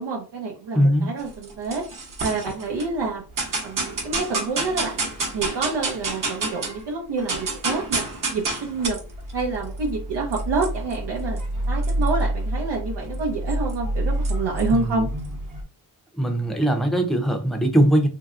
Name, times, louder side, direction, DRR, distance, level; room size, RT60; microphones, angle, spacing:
voice 1, 0.0-1.8 2.2-3.2 3.6-5.0 5.3-8.0 8.3-9.0 9.3-11.4 11.7-15.1, right 3 dB, 80° right, -1 dB, 0.7 m, -28 dB
voice 2, 0.7-1.1 14.7-15.1 16.2-18.1, right 1 dB, ahead, 4 dB, 0.6 m, -20 dB
sound 1, 1.2-2.9 3.4-6.8 7.1-15.6, right 2 dB, 50° right, 1.0 m, -28 dB
3.0 x 2.7 x 2.4 m, 0.34 s
cardioid pair, 85°, 41 cm